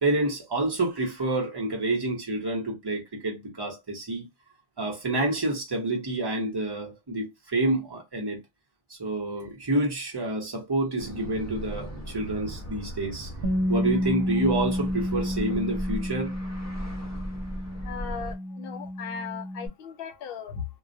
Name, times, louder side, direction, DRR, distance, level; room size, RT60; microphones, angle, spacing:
voice 1, 0.0-4.2 4.8-8.4 8.9-13.3 13.7-16.3, right 2 dB, 25° right, 0.8 m, -28 dB
sound 1, 11.0-18.3, equal, 20° left, 0.6 m, -38 dB
Bass guitar, 13.4-19.7, left 1 dB, 80° right, 1.0 m, -30 dB
voice 2, 17.8-20.7, left 7 dB, 70° left, 0.7 m, -37 dB
2.3 x 2.1 x 2.6 m
omnidirectional pair, 1.0 m